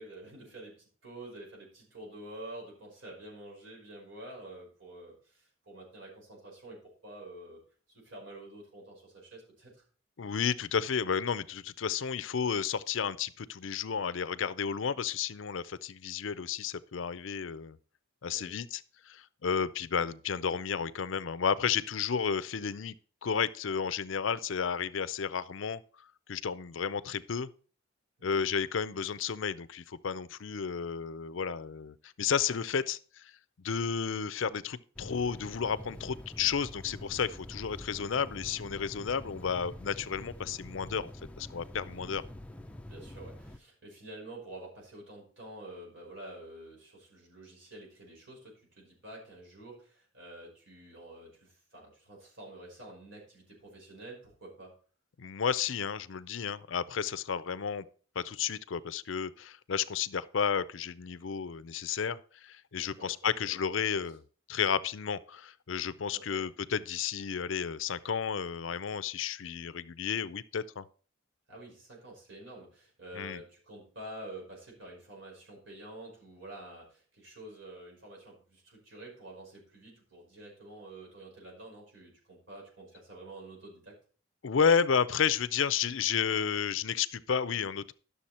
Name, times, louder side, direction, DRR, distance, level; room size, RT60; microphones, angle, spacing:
voice 1, 0.0-7.6 7.9-9.8 18.3-18.6 28.2-28.4 41.9-42.2 42.9-54.7 62.8-63.1 63.4-64.0 66.1-66.5 71.5-84.0, right 1 dB, 60° right, 5.5 m, -48 dB
voice 2, 10.2-17.8 18.2-22.9 23.2-25.8 26.3-27.5 28.2-33.3 33.6-41.1 41.4-42.2 55.2-57.9 58.2-64.2 64.5-70.8 73.1-73.4 84.4-87.9, left 6 dB, 65° left, 0.5 m, -32 dB
sound 1, 35.0-43.6, left 1 dB, 5° left, 0.5 m, -46 dB
11.5 x 6.9 x 4.2 m
head